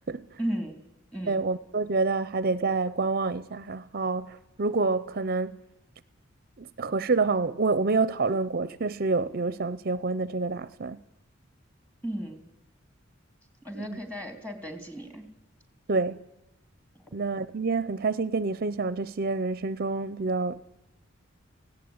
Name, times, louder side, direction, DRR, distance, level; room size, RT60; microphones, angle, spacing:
voice 1, 0.4-0.8 1.1-1.4 12.0-12.4 13.6-15.3 16.9-17.0, right 1 dB, 10° left, 3.2 m, -35 dB
voice 2, 1.3-5.6 6.6-11.0 13.7-14.0 15.9-16.2 17.1-20.6, right 3 dB, 50° right, 0.7 m, -27 dB
18.0 x 17.0 x 9.6 m
head